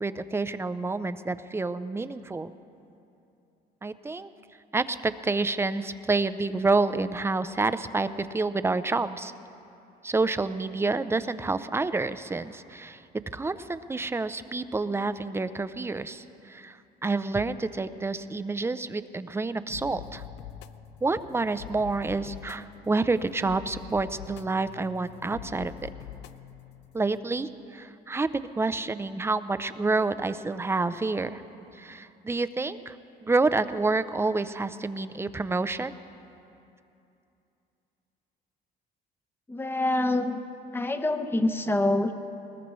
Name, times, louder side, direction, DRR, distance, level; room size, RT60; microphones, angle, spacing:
voice 1, 0.0-2.5 3.8-4.3 4.7-9.3 10.0-13.0 13.3-16.8 17.0-20.2 21.0-25.9 26.9-31.4 31.7-32.9 33.2-35.9, right 3 dB, 15° right, 13 dB, 0.5 m, -28 dB
sound 1, 19.7-27.2, left 11 dB, 85° left, 0.5 m, -45 dB
voice 2, 39.5-40.4 40.7-42.1, left 2 dB, 15° left, 8 dB, 0.8 m, -26 dB
20.5 x 20.0 x 3.1 m, 2.7 s
cardioid pair, 110°, 17 cm